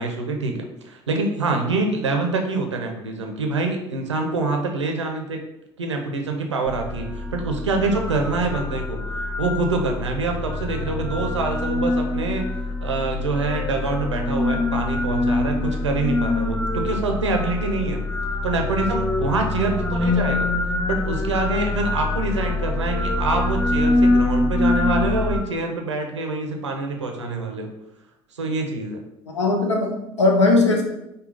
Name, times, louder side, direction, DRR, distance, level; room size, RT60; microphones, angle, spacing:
voice 1, 0.0-5.4 5.8-9.0 9.4-12.5 12.8-18.0 18.4-20.5 20.9-27.7 28.3-29.0, right 3 dB, 85° right, 3 dB, 0.6 m, -25 dB
sound 1, 6.7-25.4, left 2 dB, 10° left, 0.5 m, -24 dB
voice 2, 29.3-30.8, left 3 dB, 85° left, 1 dB, 0.7 m, -19 dB
5.1 x 2.2 x 3.9 m, 0.88 s
figure-of-eight pair, 60°, 15 cm